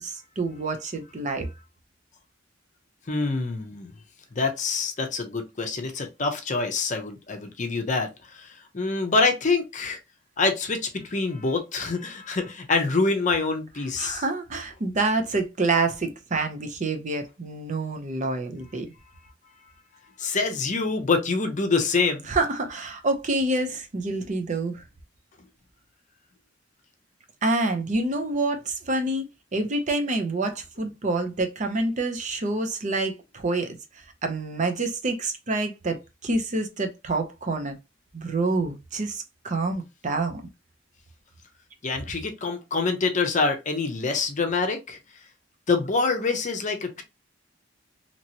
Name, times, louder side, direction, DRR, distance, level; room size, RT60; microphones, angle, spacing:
voice 1, 0.0-1.5 14.0-18.9 22.3-24.8 27.4-29.3 29.5-33.8 34.2-37.8 38.1-40.4, right 2 dB, 40° right, 0.6 m, -27 dB
voice 2, 3.1-3.9 4.3-10.0 10.4-14.2 20.2-22.2 41.8-45.0 45.7-47.0, left 4 dB, 40° left, 0.6 m, -26 dB
2.9 x 2.8 x 2.8 m
head